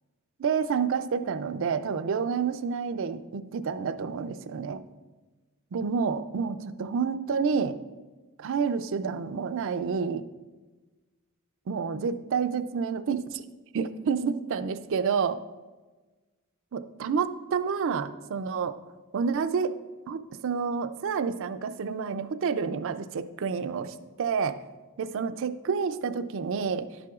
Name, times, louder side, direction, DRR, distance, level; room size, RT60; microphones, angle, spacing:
voice 1, 0.4-4.8 5.7-7.8 8.4-10.2 11.7-13.4 13.7-15.4 16.7-18.8 19.1-19.8 20.1-24.6 25.0-26.9, right 6 dB, 65° right, 11 dB, 0.4 m, -29 dB
11.0 x 7.6 x 2.4 m, 1.2 s
head